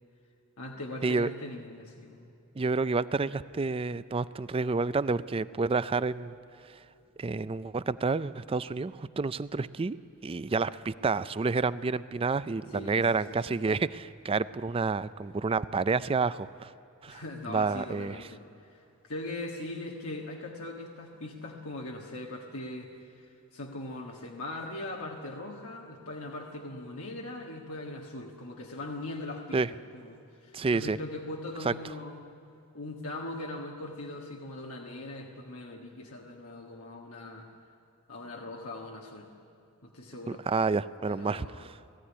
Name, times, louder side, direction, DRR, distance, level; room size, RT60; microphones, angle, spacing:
voice 1, 0.6-2.3 12.7-13.6 17.1-32.2 32.7-37.5 38.1-39.3 39.8-40.4 41.1-41.7, left 2 dB, 90° left, 0 dB, 1.6 m, -40 dB
voice 2, 2.6-6.3 6.6-6.7 7.2-10.0 10.2-16.7 17.0-18.2 29.5-29.7 30.5-31.0 31.6-31.7 40.3-41.8, right 4 dB, 25° right, 16 dB, 0.4 m, -29 dB
18.5 x 15.0 x 9.8 m, 2.8 s
head